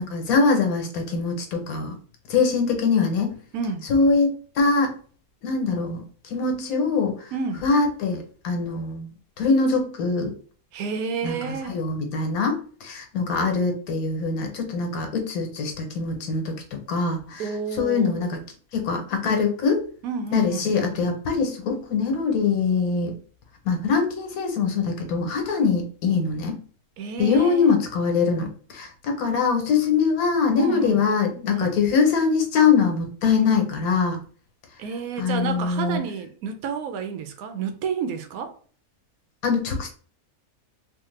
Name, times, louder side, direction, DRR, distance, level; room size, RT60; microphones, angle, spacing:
voice 1, 0.0-2.0 2.3-3.4 3.9-4.3 4.6-4.9 5.4-6.1 6.3-7.2 7.6-9.1 9.4-10.3 11.2-17.4 17.8-18.4 18.7-19.8 20.3-23.1 23.6-26.6 27.2-28.5 28.7-34.2 35.2-36.0 39.4-39.9, left 5 dB, 90° left, 1.2 m, -23 dB
voice 2, 3.5-3.9 7.3-7.7 10.7-11.8 17.4-18.3 20.0-20.7 27.0-27.7 30.6-31.0 31.5-31.7 34.8-38.6, right 5 dB, 85° right, 1.0 m, -30 dB
3.2 x 2.1 x 3.1 m
omnidirectional pair, 1.5 m